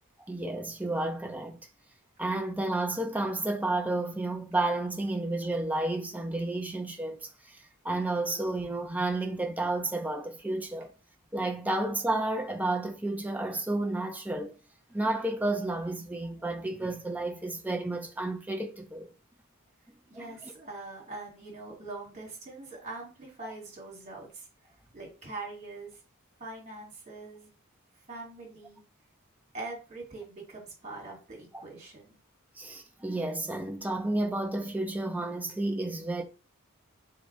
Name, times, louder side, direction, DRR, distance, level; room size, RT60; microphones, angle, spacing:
voice 1, 0.3-1.6 2.2-10.9 11.3-14.6 14.9-19.1 20.1-20.5 31.5-31.6 32.6-36.2, right 2 dB, 5° right, 0.5 m, -31 dB
voice 2, 20.1-24.5 24.9-26.0 26.4-27.5 28.1-28.8 29.5-32.2, right 2 dB, 30° right, 2.1 m, -43 dB
3.8 x 3.1 x 3.5 m
head